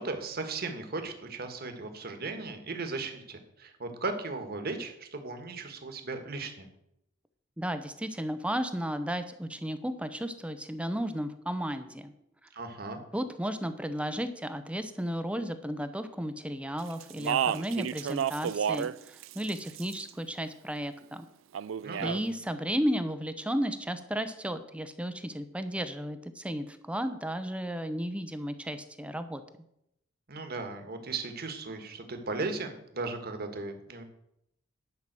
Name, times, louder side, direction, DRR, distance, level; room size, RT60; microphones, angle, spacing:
voice 1, 0.0-6.7 12.5-13.0 21.8-22.2 30.3-34.0, right 3 dB, 50° right, 6 dB, 1.6 m, -36 dB
voice 2, 7.6-12.1 13.1-21.3 22.0-29.4, equal, 5° right, 9 dB, 0.7 m, -34 dB
Speech, 17.0-19.0 19.2-20.1 21.5-22.2, right 8 dB, 70° right, 0.4 m, -31 dB
11.0 x 5.7 x 7.6 m, 0.78 s
head